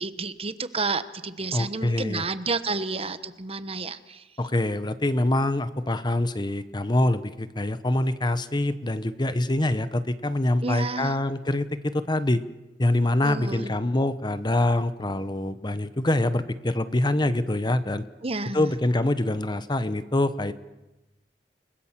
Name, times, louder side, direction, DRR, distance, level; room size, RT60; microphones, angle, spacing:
voice 1, 0.0-4.2 10.6-11.2 13.2-13.7 18.2-18.7, right 3 dB, 35° right, 12 dB, 1.2 m, -30 dB
voice 2, 1.5-2.2 4.4-12.4 12.8-18.0 18.5-20.5, left 1 dB, 25° left, 13 dB, 1.0 m, -25 dB
29.0 x 21.0 x 7.5 m, 1.0 s
head